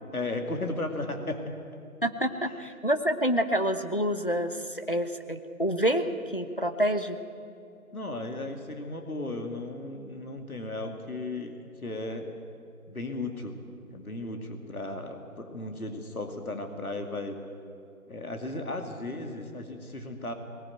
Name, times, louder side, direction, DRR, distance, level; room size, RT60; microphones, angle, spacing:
voice 1, 0.1-1.6 7.9-12.3 12.9-13.6 13.8-17.4 18.1-20.3, left 2 dB, 70° left, 5 dB, 2.5 m, -35 dB
voice 2, 2.0-6.1 6.3-7.2, equal, 35° left, 8 dB, 0.9 m, -27 dB
19.5 x 15.5 x 9.2 m, 2.7 s
figure-of-eight pair, 175°, 45 cm